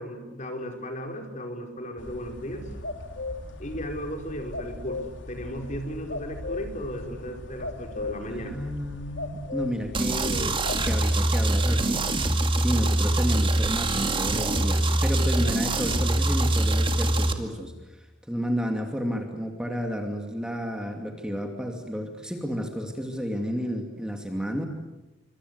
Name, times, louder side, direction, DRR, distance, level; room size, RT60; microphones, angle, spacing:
voice 1, 0.0-2.7 3.6-8.5, equal, 40° left, 3 dB, 4.8 m, -35 dB
sound 1, 2.0-11.0, left 2 dB, 80° left, 3.2 m, -37 dB
voice 2, 8.2-10.6 10.8-12.3 12.5-24.7, equal, 5° right, 3 dB, 2.6 m, -31 dB
sound 2, 9.9-17.3, right 1 dB, 30° right, 2.2 m, -24 dB
28.0 x 25.5 x 8.1 m, 1.0 s
head